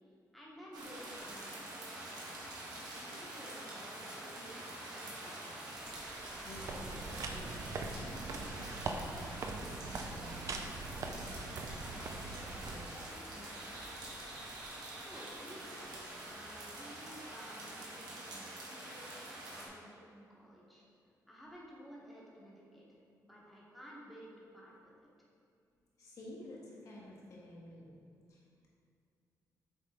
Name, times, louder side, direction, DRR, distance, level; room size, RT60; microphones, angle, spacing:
voice 1, 0.3-1.9 2.5-5.8 15.0-15.9 16.2-20.9 21.3-25.1, equal, ahead, -6 dB, 1.3 m, -54 dB
sound 1, 0.7-19.7, right 1 dB, 75° right, 1.4 m, -46 dB
sound 2, 5.7-10.7, right 1 dB, 35° right, 1.4 m, -59 dB
voice 2, 6.4-14.1 26.0-28.0 28.3-28.7, left 1 dB, 55° left, -5 dB, 1.5 m, -53 dB
Going down a staircase in a park in the afternoon, 6.5-12.9, right 3 dB, 50° right, 0.5 m, -42 dB
7.0 x 3.7 x 4.3 m, 2.4 s
cardioid pair, 130°, 7 cm